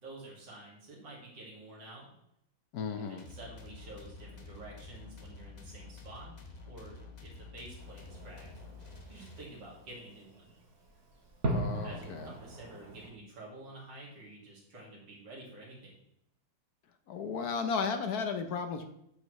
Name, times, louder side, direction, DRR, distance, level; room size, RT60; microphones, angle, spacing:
voice 1, 0.0-2.1 3.1-6.4 6.7-8.5 9.1-10.5 11.8-16.0, right 2 dB, 75° right, -4 dB, 2.8 m, -49 dB
voice 2, 2.7-3.3 11.5-12.3 17.1-18.8, left 5 dB, 65° left, 7 dB, 1.2 m, -34 dB
sound 1, 3.2-9.9, left 4 dB, 30° left, 0.8 m, -49 dB
Fireworks, 7.8-13.1, right 1 dB, 55° right, 1.8 m, -40 dB
8.4 x 8.1 x 3.1 m, 0.78 s
omnidirectional pair, 1.9 m